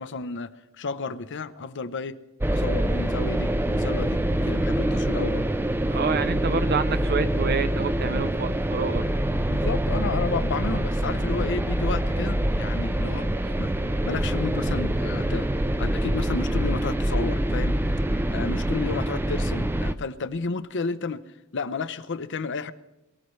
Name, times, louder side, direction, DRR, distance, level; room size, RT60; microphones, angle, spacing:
voice 1, 0.0-2.2 2.5-5.5 9.5-13.3 13.6-13.7 14.0-15.5 15.8-17.8 18.1-21.2 21.5-22.7, left 4 dB, 60° left, 12 dB, 0.7 m, -32 dB
sound 1, 2.4-19.9, right 1 dB, 10° right, 0.4 m, -25 dB
voice 2, 5.9-9.0, right 5 dB, 50° right, 12 dB, 0.7 m, -28 dB
23.0 x 14.5 x 3.2 m, 0.96 s
head